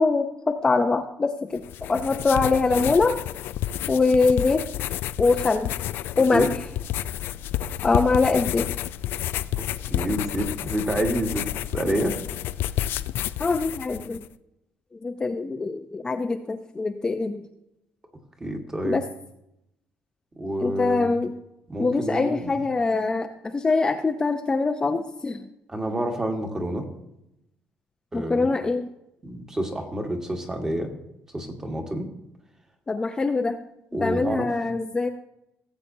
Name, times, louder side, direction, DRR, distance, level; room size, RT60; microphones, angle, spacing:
voice 1, 0.0-3.2 3.9-4.6 5.2-5.7 6.2-6.5 7.8-8.7 13.4-14.2 15.0-17.4 18.8-19.0 20.6-21.3 21.8-25.4 28.1-28.9 32.9-33.6 34.0-35.1, left 3 dB, 20° left, 5 dB, 0.5 m, -23 dB
sound 1, 1.6-14.3, left 12 dB, 75° left, 0.4 m, -30 dB
voice 2, 6.2-6.5 9.6-11.5 11.7-12.2 18.4-19.0 20.3-21.0 21.7-22.5 25.7-26.9 28.1-28.5 29.2-30.9 31.3-32.1 33.9-34.5, right 1 dB, 15° right, 3 dB, 1.5 m, -28 dB
17.0 x 7.9 x 2.7 m, 0.84 s
cardioid pair, 140°, 4 cm